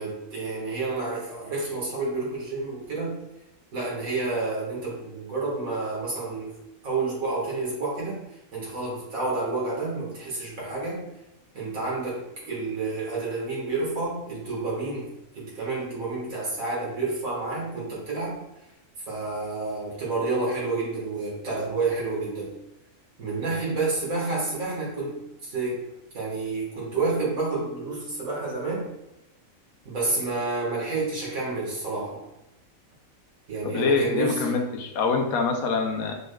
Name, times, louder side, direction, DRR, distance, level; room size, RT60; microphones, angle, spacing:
voice 1, 0.0-3.1 3.7-6.5 6.8-11.0 11.5-18.4 19.1-22.5 23.2-25.8 26.1-28.9 29.9-32.2 33.5-34.6, right 3 dB, 75° right, -5 dB, 2.0 m, -29 dB
voice 2, 33.6-36.2, left 4 dB, 85° left, 5 dB, 1.1 m, -25 dB
5.3 x 3.2 x 2.2 m, 0.94 s
omnidirectional pair, 1.5 m